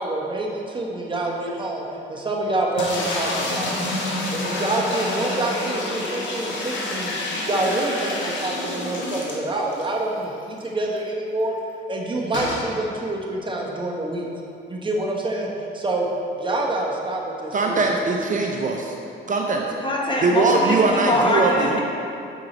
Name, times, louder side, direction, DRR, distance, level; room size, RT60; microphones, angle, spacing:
voice 1, 0.0-4.0 4.3-7.2 7.5-11.6 11.9-14.3 14.7-16.1 16.4-17.8, right 2 dB, 25° right, -2 dB, 1.0 m, -27 dB
sound 1, 2.8-9.9 10.3-10.4 10.6-10.7 12.3-12.7, left 2 dB, 70° left, 1.2 m, -28 dB
voice 2, 17.5-19.0 19.3-19.7 20.2-21.8, right 3 dB, 40° right, 1 dB, 0.6 m, -21 dB
voice 3, 19.8-21.8, left 1 dB, 25° left, -2 dB, 1.2 m, -23 dB
7.1 x 4.7 x 3.9 m, 2.7 s
cardioid pair, 90°, 20 cm